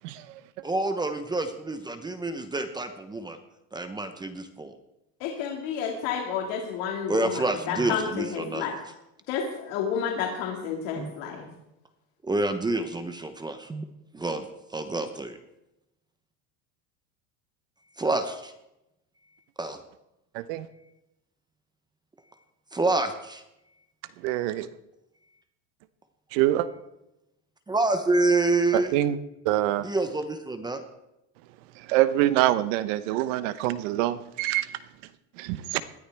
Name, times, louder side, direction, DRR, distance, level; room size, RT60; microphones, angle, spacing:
voice 1, 0.6-3.4 3.7-4.8 7.1-8.9 11.0-11.1 12.2-13.8 14.1-14.5 14.7-15.4 18.0-18.5 19.6-19.8 22.7-23.4 27.7-29.0 29.8-30.8, right 2 dB, 10° right, 8 dB, 0.8 m, -27 dB
voice 2, 5.2-7.1 7.7-8.1 8.3-8.7 9.3-11.4, left 7 dB, 70° left, 0 dB, 2.3 m, -30 dB
voice 3, 20.3-20.7 24.2-24.7 26.3-26.7 28.7-29.2 29.4-29.9 31.9-34.7 35.4-35.8, right 14 dB, 75° right, 14 dB, 1.0 m, -25 dB
20.5 x 13.0 x 3.5 m, 0.89 s
supercardioid pair, 135°, 38 cm